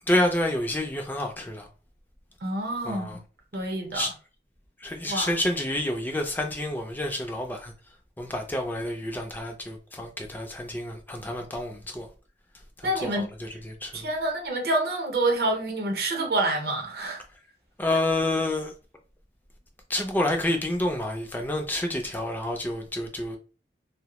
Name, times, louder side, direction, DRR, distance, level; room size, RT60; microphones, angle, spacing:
voice 1, 0.1-1.7 2.8-3.2 3.9-4.1 4.8-7.7 8.2-12.1 12.8-14.1 17.8-18.7 19.9-23.4, left 1 dB, 10° left, 0.3 m, -29 dB
voice 2, 2.4-3.2 3.5-4.1 5.1-5.3 12.8-13.3 13.9-17.2, right 1 dB, 65° right, 0.7 m, -27 dB
2.2 x 2.0 x 2.9 m
head